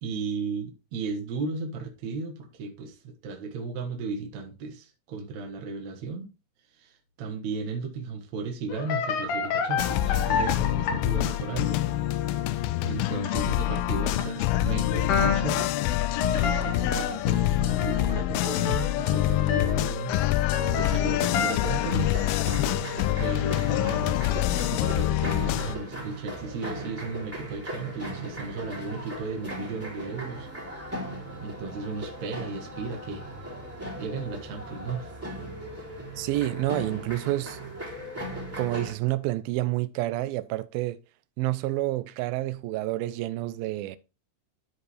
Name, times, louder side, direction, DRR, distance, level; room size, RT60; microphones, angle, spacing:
voice 1, 0.0-6.3 6.7-11.8 12.8-15.7 16.3-20.1 20.7-22.3 23.2-30.5 31.0-31.1 31.4-33.3 34.0-35.1, right 4 dB, 55° right, 2.3 m, -35 dB
sound 1, 8.7-11.7 12.2-12.3 12.6-12.7 13.3-13.8 14.1-14.2 15.1-21.5, left 5 dB, 60° left, 2.6 m, -30 dB
sound 2, 9.8-25.8, left 15 dB, 80° left, 2.1 m, -26 dB
sound 3, 21.6-38.9, right 1 dB, 5° right, 2.2 m, -38 dB
voice 2, 36.2-37.6 38.6-41.0 41.4-44.0, right 17 dB, 80° right, 2.2 m, -29 dB
12.5 x 4.7 x 3.3 m
omnidirectional pair, 4.6 m